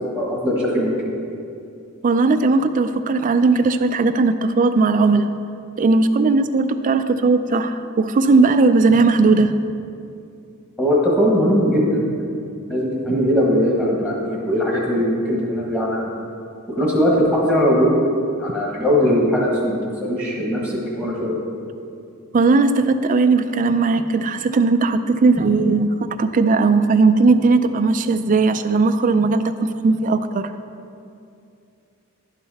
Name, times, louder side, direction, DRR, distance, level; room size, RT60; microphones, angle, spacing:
voice 1, 0.1-1.1 10.8-16.1 16.8-18.0 18.4-21.4, equal, 10° left, -4 dB, 1.3 m, -20 dB
voice 2, 2.0-5.3 5.8-9.5 22.3-30.5, right 3 dB, 35° right, 10 dB, 0.3 m, -17 dB
11.0 x 5.8 x 4.1 m, 2.5 s
head